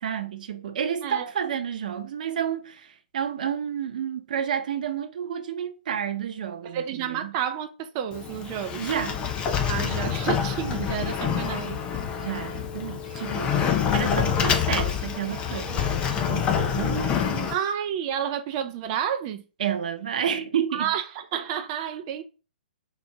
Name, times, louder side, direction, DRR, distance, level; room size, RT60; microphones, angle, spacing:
voice 1, 0.0-7.3 8.8-9.3 12.2-17.6 19.6-20.9, right 8 dB, 55° right, 0.8 m, -30 dB
voice 2, 6.6-8.8 9.7-11.8 13.4-13.7 17.5-19.4 20.7-21.0 21.3-22.2, right 9 dB, 35° right, 0.5 m, -30 dB
Sliding door, 8.1-17.5, left 7 dB, 20° left, 0.6 m, -27 dB
4.3 x 2.6 x 4.7 m
figure-of-eight pair, 130°, 5 cm